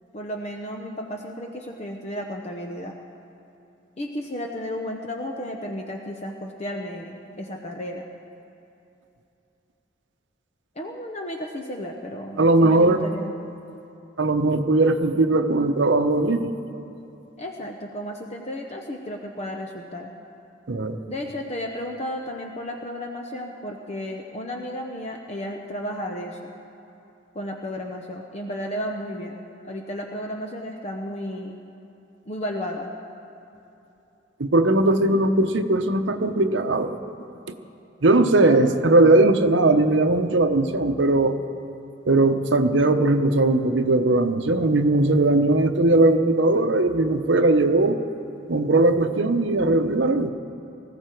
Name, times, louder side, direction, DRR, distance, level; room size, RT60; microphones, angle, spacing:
voice 1, 0.1-2.9 4.0-8.1 10.7-13.3 17.4-20.1 21.1-26.5 27.3-31.6 32.3-32.9 34.8-35.2 38.4-38.6, equal, 35° left, 2 dB, 0.8 m, -33 dB
voice 2, 12.4-13.0 14.2-16.5 20.7-21.0 34.4-36.9 38.0-41.4 42.1-48.0 48.5-50.3, right 2 dB, 70° right, 7 dB, 0.8 m, -19 dB
20.0 x 15.0 x 4.6 m, 2.8 s
head